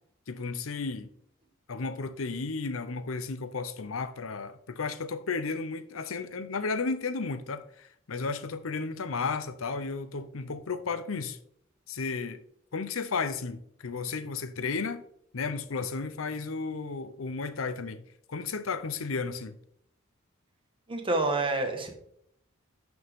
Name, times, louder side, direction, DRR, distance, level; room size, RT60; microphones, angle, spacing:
voice 1, 0.3-1.1 1.7-11.4 11.9-12.4 12.7-15.0 15.3-19.5, left 4 dB, 85° left, 0.7 m, -33 dB
voice 2, 20.9-21.9, right 2 dB, 25° right, 1.5 m, -28 dB
11.0 x 6.1 x 3.6 m
head